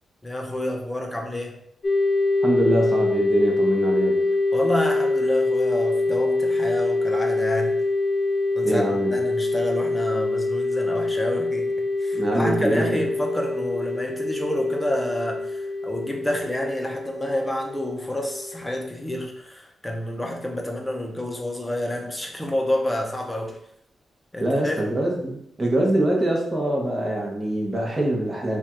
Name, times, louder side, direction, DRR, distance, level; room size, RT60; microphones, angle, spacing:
voice 1, 0.2-1.6 4.5-7.8 8.5-23.6 24.3-24.8, left 1 dB, 10° left, 1 dB, 0.7 m, -29 dB
sound 1, 1.8-19.2, left 2 dB, 50° left, 0.8 m, -25 dB
voice 2, 2.4-4.2 8.6-9.1 12.1-12.9 24.4-28.6, right 1 dB, 25° right, -1 dB, 1.0 m, -23 dB
3.3 x 2.4 x 4.3 m, 0.73 s
cardioid pair, 95°, 0 cm